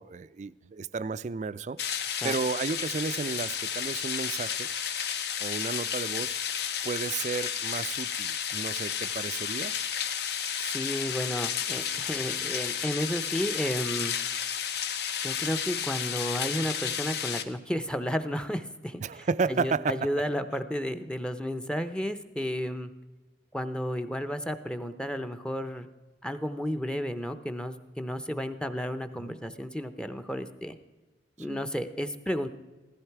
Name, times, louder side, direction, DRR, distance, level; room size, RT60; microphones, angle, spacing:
voice 1, 0.0-1.8 2.2-4.7 5.4-6.3 6.8-9.7 19.0-20.0 29.2-29.3 31.5-31.6, right 4 dB, 40° right, 16 dB, 0.4 m, -32 dB
sound 1, 1.8-17.4, left 8 dB, 60° left, 0.9 m, -32 dB
voice 2, 10.7-14.1 15.2-22.9 23.5-25.9 26.2-30.8 31.4-32.5, equal, 5° left, 8 dB, 0.6 m, -32 dB
16.0 x 14.5 x 4.7 m, 1.2 s
head